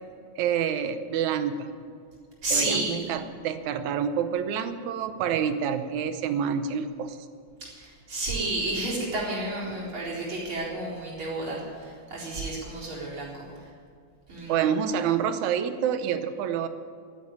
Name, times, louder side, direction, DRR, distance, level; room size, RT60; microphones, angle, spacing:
voice 1, 0.4-1.7 2.5-7.2 14.5-16.7, right 8 dB, 80° right, 10 dB, 2.2 m, -27 dB
voice 2, 2.4-3.1 7.6-13.7 14.3-14.7, right 2 dB, 40° right, -5 dB, 4.8 m, -31 dB
12.5 x 10.5 x 10.0 m, 2.2 s
omnidirectional pair, 3.5 m